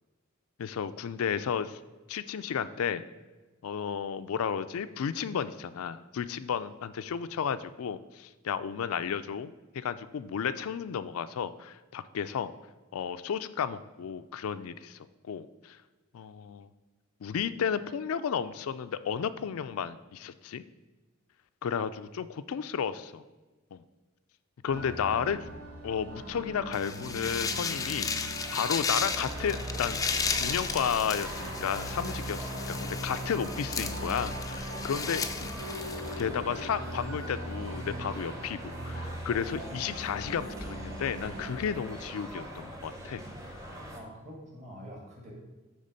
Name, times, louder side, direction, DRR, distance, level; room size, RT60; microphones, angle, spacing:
voice 1, 0.6-1.8 2.1-3.0 3.6-12.5 12.9-15.0 15.2-15.8 16.1-16.7 17.2-20.6 21.6-23.2 23.7-23.8 24.6-25.5 25.8-30.0 30.4-35.6 36.1-43.2, left 7 dB, 85° left, 12 dB, 0.4 m, -33 dB
sound 1, 24.7-41.5, right 1 dB, 80° right, 1.6 m, -40 dB
sound 2, 26.7-36.2, left 5 dB, 15° left, 0.3 m, -34 dB
sound 3, 29.0-44.0, equal, 15° right, 0.9 m, -43 dB
voice 2, 43.9-45.3, equal, 35° right, -3 dB, 1.9 m, -46 dB
9.6 x 3.5 x 5.2 m, 1.2 s
head